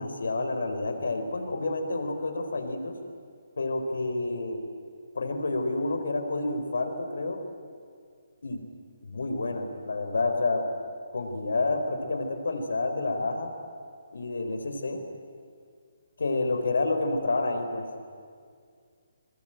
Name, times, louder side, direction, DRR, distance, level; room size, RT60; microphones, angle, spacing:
voice 1, 0.0-2.9 3.6-4.6 5.1-7.4 8.4-8.6 9.0-10.7 11.1-13.5 14.1-15.0 16.2-17.9, left 2 dB, 85° left, 6 dB, 4.2 m, -29 dB
30.0 x 21.0 x 9.0 m, 2.2 s
hypercardioid pair, 165°, 0 cm